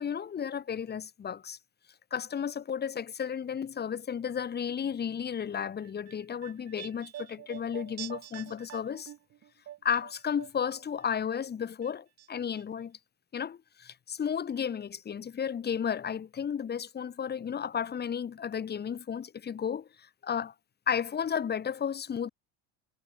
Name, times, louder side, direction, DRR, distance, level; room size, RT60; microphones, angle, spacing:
voice 1, 0.0-1.6 2.1-9.1 9.8-13.0 13.3-19.9 20.2-20.5 20.9-22.3, left 7 dB, 25° left, 2.9 m, -33 dB
sound 1, 5.8-11.1 11.3-12.3 12.5-12.6, right 12 dB, 35° right, 2.8 m, -46 dB
cardioid pair, 160°, 42 cm